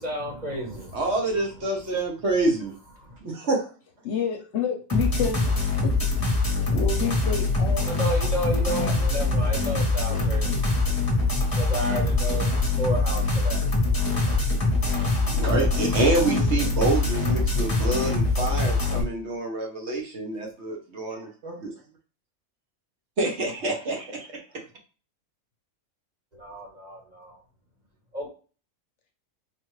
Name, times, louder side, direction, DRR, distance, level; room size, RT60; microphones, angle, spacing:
voice 1, 0.0-1.0 3.0-3.2 7.9-13.7 26.3-27.4 28.1-28.3, equal, 35° right, -1 dB, 1.2 m, -32 dB
voice 2, 0.9-2.7 3.2-3.7 15.2-21.7 23.2-24.4, right 2 dB, 60° right, 0 dB, 1.1 m, -27 dB
voice 3, 4.0-5.4 5.8-6.1 6.7-7.9 8.7-9.2 16.2-16.7, left 7 dB, 65° left, 3 dB, 0.9 m, -30 dB
sound 1, 4.9-19.0, left 3 dB, 20° left, 0.9 m, -23 dB
4.4 x 2.4 x 3.1 m, 0.36 s
omnidirectional pair, 1.4 m